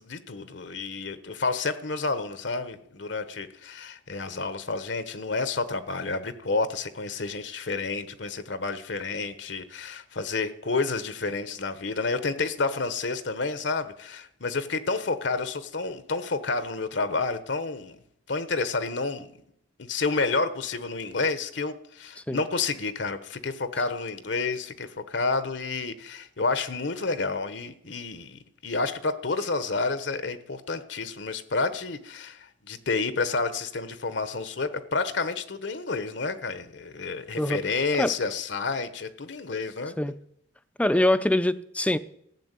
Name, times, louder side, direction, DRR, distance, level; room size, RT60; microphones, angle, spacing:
voice 1, 0.0-18.0 18.3-19.3 19.8-39.9, left 3 dB, 65° left, 1.1 m, -30 dB
voice 2, 40.8-42.0, left 1 dB, 5° left, 0.6 m, -23 dB
15.0 x 8.3 x 8.2 m
head